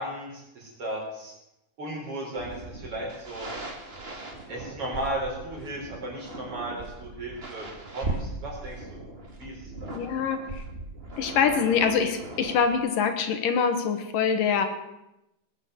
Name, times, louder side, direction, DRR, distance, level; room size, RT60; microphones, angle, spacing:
voice 1, 0.0-1.3 1.8-3.5 4.3-9.0 9.4-10.0, right 1 dB, 40° right, -2 dB, 5.5 m, -35 dB
sound 1, 2.4-12.8, right 2 dB, 20° right, 1.7 m, -39 dB
voice 2, 9.9-10.4 11.2-14.7, left 6 dB, 75° left, 7 dB, 2.8 m, -24 dB
20.0 x 8.3 x 8.0 m, 0.90 s
omnidirectional pair, 4.1 m